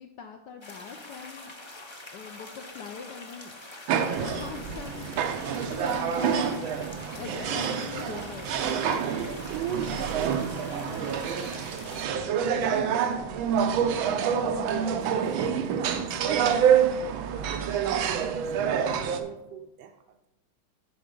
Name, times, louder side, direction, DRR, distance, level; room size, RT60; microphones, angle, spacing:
voice 1, 0.0-1.5 2.1-3.9 4.2-5.1 5.5-6.7 7.2-8.5, left 6 dB, 70° left, 4 dB, 1.1 m, -42 dB
sound 1, 0.6-12.1, left 2 dB, 35° left, 0.4 m, -45 dB
sound 2, 3.9-19.2, right 7 dB, 90° right, 1.5 m, -27 dB
voice 2, 9.5-20.2, right 9 dB, 75° right, 5 dB, 1.1 m, -39 dB
9.5 x 4.7 x 5.3 m, 0.94 s
omnidirectional pair, 2.2 m